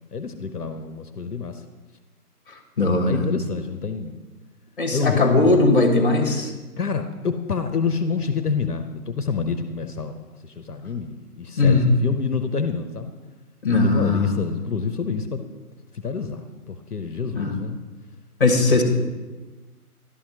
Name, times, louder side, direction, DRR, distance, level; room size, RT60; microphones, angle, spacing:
voice 1, 0.1-1.6 3.1-4.1 4.9-5.6 6.8-13.1 13.7-15.4 15.9-17.8, left 5 dB, 70° left, 7 dB, 0.8 m, -27 dB
voice 2, 2.8-3.2 4.8-6.5 11.6-11.9 13.6-14.3 17.3-17.5 18.4-18.8, left 3 dB, 35° left, 5 dB, 1.1 m, -19 dB
11.5 x 5.7 x 2.8 m, 1.2 s
figure-of-eight pair, 155°, 47 cm